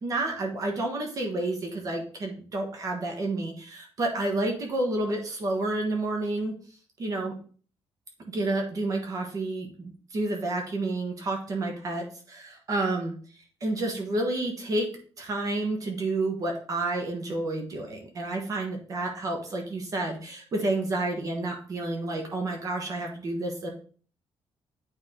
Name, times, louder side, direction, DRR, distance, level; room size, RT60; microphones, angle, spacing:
voice 1, 0.0-6.5 7.0-7.3 8.3-13.1 13.6-14.9 15.2-23.7, right 2 dB, 35° right, 1 dB, 1.3 m, -30 dB
9.2 x 3.6 x 3.7 m, 0.43 s
cardioid pair, 170°, 10 cm